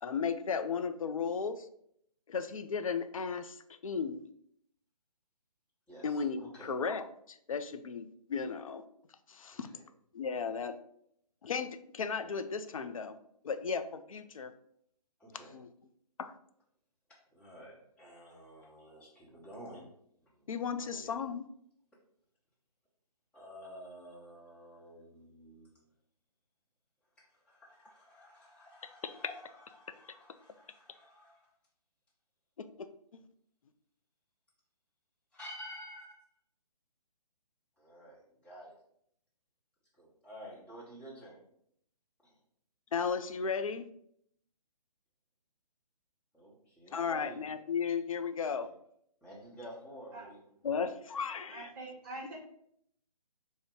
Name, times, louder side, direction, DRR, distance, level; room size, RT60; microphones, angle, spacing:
voice 1, 0.0-1.7 2.3-4.2 6.0-8.8 9.3-9.7 10.1-10.8 11.4-13.2 13.4-14.5 15.5-15.7 16.2-16.3 20.5-21.5 32.6-32.9 33.1-33.2 42.9-43.8 46.9-48.7 50.6-51.7 52.2-52.3, left 6 dB, 60° left, 10 dB, 0.4 m, -35 dB
voice 2, 5.9-6.7 9.5-9.8 15.2-15.5 17.3-19.9 20.2-21.1 23.3-25.7 27.4-31.5 35.3-36.2 37.8-38.8 40.0-41.4 42.2-42.4 46.3-47.4 48.6-48.7 49.2-50.4, equal, 5° left, -7 dB, 0.9 m, -51 dB
voice 3, 51.5-52.3, right 2 dB, 35° right, -4 dB, 0.8 m, -44 dB
4.5 x 2.1 x 3.7 m, 0.70 s
figure-of-eight pair, 135°, 20 cm